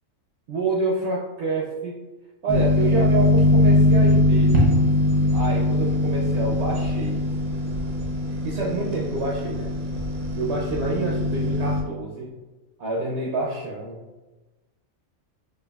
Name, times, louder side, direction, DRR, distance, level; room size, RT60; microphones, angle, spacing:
voice 1, 0.5-2.0 2.4-4.7 5.3-7.3 8.3-9.7 10.4-12.3 12.8-14.0, right 3 dB, 65° right, -2 dB, 0.7 m, -28 dB
sound 1, 2.5-11.8, left 1 dB, 90° right, 1.2 m, -21 dB
4.6 x 2.5 x 2.3 m, 1.1 s
omnidirectional pair, 1.4 m